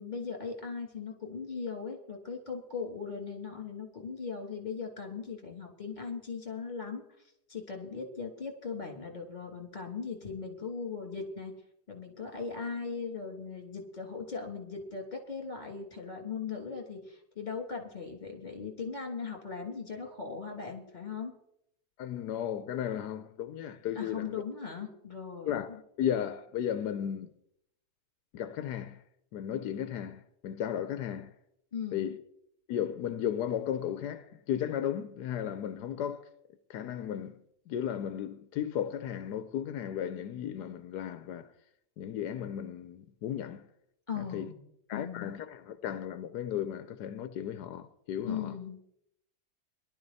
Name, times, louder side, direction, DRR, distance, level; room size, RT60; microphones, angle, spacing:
voice 1, 0.0-7.0 7.5-11.5 11.9-21.3 23.9-25.8 31.7-32.1 44.1-44.6 44.9-45.4 48.3-48.9, left 5 dB, 25° left, 3.0 m, -39 dB
voice 2, 22.0-24.4 25.5-27.3 28.3-29.0 29.3-31.3 31.9-32.2 32.7-36.2 36.7-37.4 37.7-41.5 42.0-43.6 44.1-44.5 44.9-48.5, left 9 dB, 85° left, 1.3 m, -35 dB
19.0 x 12.0 x 4.1 m
omnidirectional pair, 1.7 m